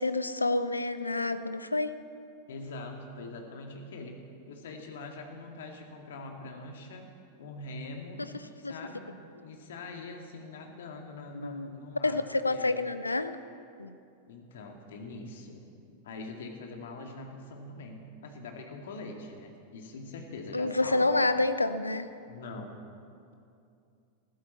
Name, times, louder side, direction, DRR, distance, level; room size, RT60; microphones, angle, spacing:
voice 1, 0.0-1.9 8.2-8.3 8.6-8.7 11.3-11.7 12.0-13.4 13.8-14.0 20.5-22.1, left 2 dB, 80° left, 12 dB, 0.6 m, -28 dB
voice 2, 2.5-4.2 4.5-7.1 7.4-8.3 8.6-9.1 9.4-12.2 12.5-12.8 14.3-15.6 16.0-21.2 22.3-22.8, left 3 dB, 60° left, 3 dB, 2.2 m, -43 dB
20.0 x 15.0 x 4.3 m, 2.5 s
figure-of-eight pair, 90°, 0 cm